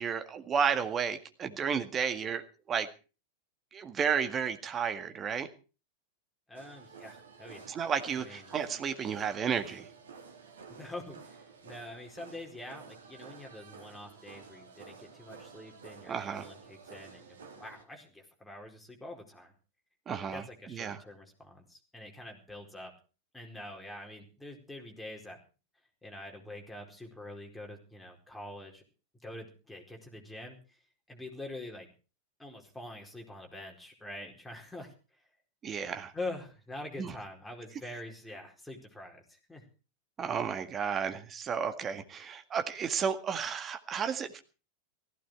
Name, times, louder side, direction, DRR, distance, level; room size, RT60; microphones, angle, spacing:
voice 1, 0.0-2.9 3.7-5.5 7.7-9.9 16.1-16.5 20.1-21.0 35.6-36.1 37.0-37.1 40.2-44.4, right 7 dB, 25° right, 8 dB, 1.9 m, -32 dB
voice 2, 6.5-7.7 8.2-8.5 10.7-11.4 11.6-19.5 20.3-22.9 23.3-25.4 26.0-28.8 29.2-30.6 31.1-31.9 32.4-34.9 36.1-39.6, left 1 dB, 5° left, 1 dB, 4.6 m, -45 dB
sound 1, 6.5-17.8, right 5 dB, 65° right, 2.6 m, -51 dB
16.5 x 15.5 x 4.7 m, 0.36 s
figure-of-eight pair, 90°, 0 cm